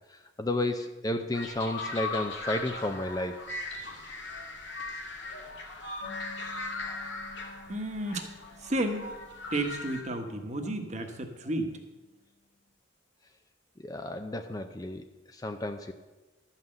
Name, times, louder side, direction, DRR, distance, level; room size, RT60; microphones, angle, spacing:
voice 1, 0.1-3.4 13.8-15.1 15.3-15.9, left 1 dB, 20° left, 7 dB, 0.5 m, -32 dB
sound 1, 1.3-10.0, left 3 dB, 65° left, 1.9 m, -39 dB
sound 2, 6.0-12.2, left 3 dB, 80° left, 1.6 m, -52 dB
voice 2, 7.7-8.3 8.6-9.1 9.5-11.7, right 1 dB, 35° right, 5 dB, 1.2 m, -32 dB
12.5 x 5.8 x 7.7 m, 1.2 s
head